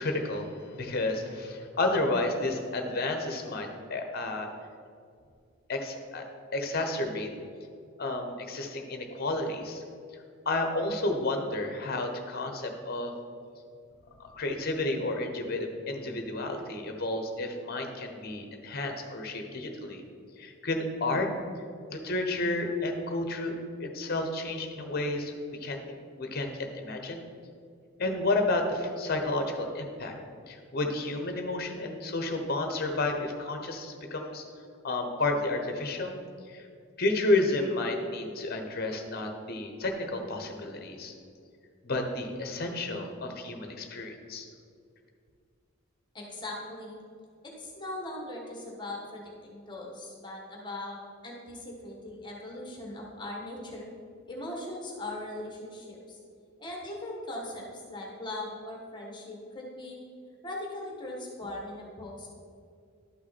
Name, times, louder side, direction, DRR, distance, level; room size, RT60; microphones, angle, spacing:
voice 1, 0.0-4.5 5.7-6.3 6.5-7.3 8.0-9.8 10.1-13.1 14.2-20.0 20.4-21.3 21.9-25.3 25.6-27.2 28.0-30.1 30.5-34.4 34.8-36.2 36.5-36.7 37.0-41.1 41.8-44.5, left 2 dB, 50° left, 4 dB, 1.0 m, -31 dB
voice 2, 46.1-47.0 47.6-53.9 54.3-56.2 56.6-60.0 60.4-62.3, left 1 dB, 20° left, -2 dB, 1.5 m, -40 dB
11.5 x 5.9 x 4.2 m, 2.3 s
head